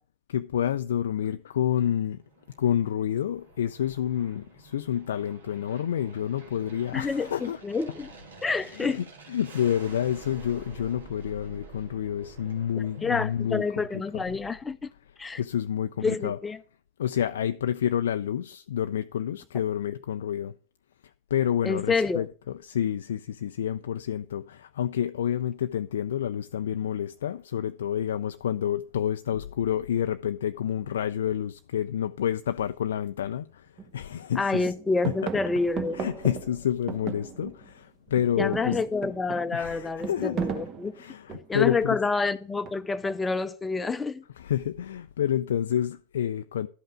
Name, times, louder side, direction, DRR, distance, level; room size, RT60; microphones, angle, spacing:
voice 1, 0.3-2.2 2.6-7.6 8.5-13.6 13.9-14.2 15.4-16.4 17.0-20.5 21.3-34.7 35.0-35.1 35.9-38.8 39.5-40.4 41.0-42.0 44.4-46.7, left 10 dB, 60° left, 0.3 m, -29 dB
Aircraft, 1.7-14.4, right 3 dB, 70° right, 2.0 m, -49 dB
voice 2, 6.9-8.1 8.4-9.0 13.0-14.9 15.2-15.4 16.0-16.6 21.6-22.2 34.4-36.0 38.4-40.9 41.5-44.2, left 4 dB, 10° left, 0.6 m, -28 dB
sound 1, 33.3-33.4 33.8-34.3 34.6-37.8 38.1-41.7 42.6-43.1, right 6 dB, 30° right, 1.0 m, -36 dB
12.0 x 5.5 x 5.0 m
figure-of-eight pair, 90°, 0 cm